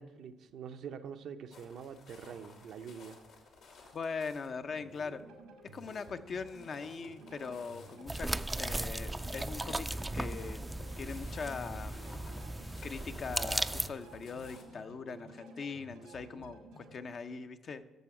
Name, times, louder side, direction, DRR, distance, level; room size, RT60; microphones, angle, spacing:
voice 1, 0.0-3.2, right 7 dB, 70° right, 7 dB, 0.6 m, -45 dB
sound 1, 1.5-14.6, left 4 dB, 75° left, 2.1 m, -57 dB
voice 2, 3.9-5.2 5.7-8.3 8.6-9.9 10.1-10.6 11.0-12.3 12.8-17.9, left 5 dB, 50° left, 9 dB, 0.6 m, -41 dB
sound 2, 4.6-17.0, right 3 dB, 90° right, 1.8 m, -53 dB
sound 3, 8.1-13.9, right 1 dB, 15° right, 0.4 m, -36 dB
12.0 x 6.8 x 4.9 m, 1.2 s
supercardioid pair, 60°, 0 cm